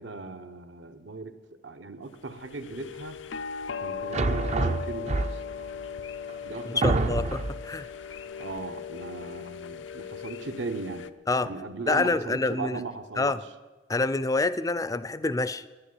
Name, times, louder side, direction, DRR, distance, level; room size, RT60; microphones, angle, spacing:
voice 1, 0.0-3.2 3.8-5.4 6.4-7.2 8.4-11.1 11.4-13.4, right 3 dB, 75° right, 8 dB, 1.0 m, -38 dB
sound 1, 2.3-11.1, left 6 dB, 85° left, 0.6 m, -38 dB
sound 2, 4.1-5.6 6.3-6.4 6.8-7.7, right 2 dB, 35° right, 0.5 m, -26 dB
voice 2, 6.8-7.9 11.3-11.5 11.9-12.8 13.2-13.4 13.9-15.6, left 3 dB, 20° left, 16 dB, 0.4 m, -27 dB
10.5 x 10.0 x 9.8 m, 1.3 s
head